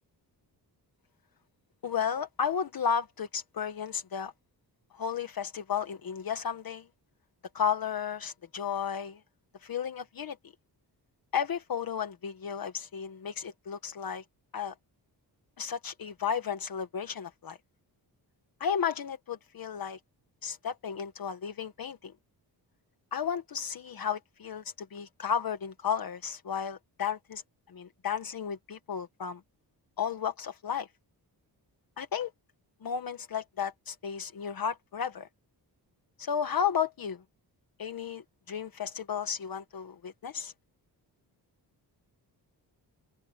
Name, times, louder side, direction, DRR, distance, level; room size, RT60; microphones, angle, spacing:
voice 1, 1.8-4.3 4.9-6.9 7.5-9.2 9.6-10.4 11.3-14.2 14.5-14.7 15.6-17.6 18.6-20.0 20.4-22.1 23.1-27.4 27.7-29.4 30.0-30.9 32.0-32.3 32.8-35.3 36.2-37.2 37.8-40.5, left 7 dB, 55° left, 1.5 m, -33 dB
wide cardioid pair, 145°, 41 cm